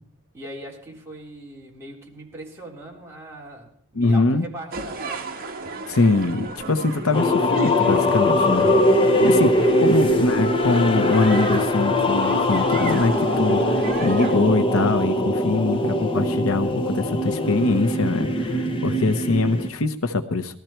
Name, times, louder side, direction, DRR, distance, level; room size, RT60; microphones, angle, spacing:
voice 1, 0.3-5.3 9.1-9.9, right 1 dB, 10° right, -3 dB, 4.0 m, -40 dB
voice 2, 3.9-4.5 5.9-20.6, left 3 dB, 70° left, 9 dB, 0.9 m, -23 dB
sound 1, 4.7-14.4, right 3 dB, 45° right, 1.8 m, -35 dB
sound 2, 7.1-19.7, left 1 dB, 25° left, 1.1 m, -21 dB
19.0 x 13.5 x 4.5 m, 0.65 s
head